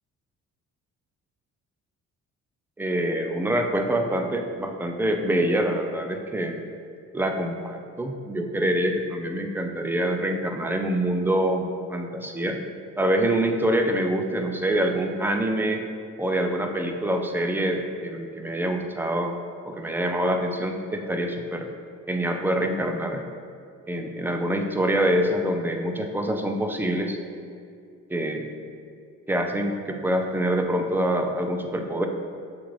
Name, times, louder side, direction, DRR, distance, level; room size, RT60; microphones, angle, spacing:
voice 1, 2.8-6.6 7.1-12.6 13.0-15.8 16.2-19.3 19.7-21.7 22.1-23.2 23.9-27.2 28.1-28.6 29.3-32.1, right 1 dB, 5° right, 3 dB, 0.4 m, -25 dB
7.0 x 2.5 x 3.0 m, 2.3 s
cardioid pair, 90°, 30 cm